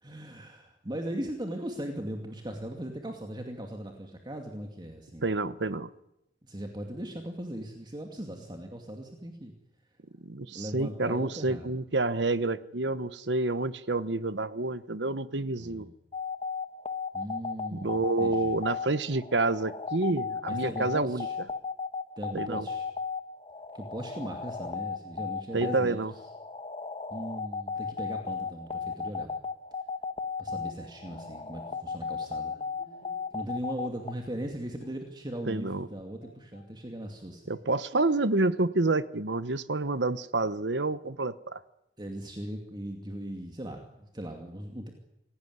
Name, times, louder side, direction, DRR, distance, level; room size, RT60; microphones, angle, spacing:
voice 1, 0.0-5.3 6.4-9.5 10.5-11.7 15.6-15.9 17.1-18.6 20.5-21.4 22.2-22.9 23.7-26.0 27.1-29.3 30.4-32.6 33.3-37.6 42.0-44.9, right 1 dB, 25° right, 3 dB, 2.6 m, -38 dB
voice 2, 5.2-5.9 10.2-15.9 17.7-21.3 22.3-22.7 25.5-26.1 35.5-35.9 37.5-41.6, right 2 dB, 75° right, 14 dB, 1.1 m, -28 dB
sound 1, 16.1-34.1, left 5 dB, 30° left, 1.4 m, -35 dB
Bowed string instrument, 30.5-33.5 33.8-34.0 34.5-34.6 34.8-36.7 37.0-37.8 38.5-39.1, equal, 65° left, 6.1 m, -58 dB
26.5 x 18.0 x 9.6 m, 0.86 s
head